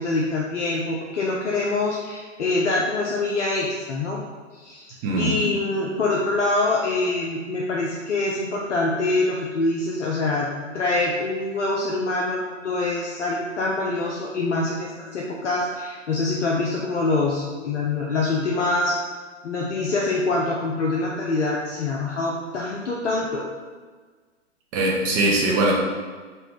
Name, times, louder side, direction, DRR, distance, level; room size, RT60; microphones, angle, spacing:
voice 1, 0.0-4.2 4.5-10.5 10.7-19.0 19.4-23.5, left 2 dB, 70° left, -2 dB, 0.7 m, -25 dB
voice 2, 5.0-5.4 24.7-25.7, right 2 dB, 25° right, -2 dB, 0.7 m, -21 dB
3.3 x 2.5 x 4.5 m, 1.4 s
figure-of-eight pair, 115°, 37 cm